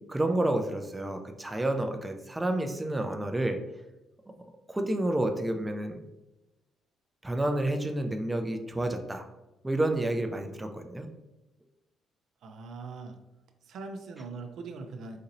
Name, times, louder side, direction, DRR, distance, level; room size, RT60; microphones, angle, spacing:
voice 1, 0.1-3.6 4.7-6.0 7.2-9.3 9.6-11.1, right 1 dB, 10° right, 4 dB, 0.4 m, -29 dB
voice 2, 12.4-13.2 13.6-15.2, right 4 dB, 75° right, 5 dB, 0.4 m, -41 dB
4.1 x 2.7 x 2.6 m, 0.99 s
cardioid pair, 90°, 0 cm